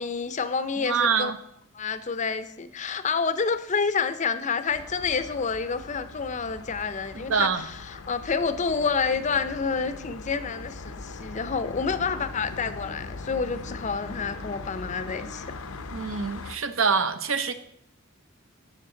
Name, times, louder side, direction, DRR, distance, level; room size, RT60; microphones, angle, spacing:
voice 1, 0.0-1.3 1.7-15.5, left 5 dB, 35° left, 12 dB, 0.5 m, -28 dB
voice 2, 0.8-1.4 7.1-7.6 15.9-17.5, right 5 dB, 70° right, 9 dB, 0.8 m, -25 dB
sound 1, 4.7-16.6, left 3 dB, 85° left, 0.7 m, -40 dB
12.0 x 7.9 x 3.8 m, 0.73 s
head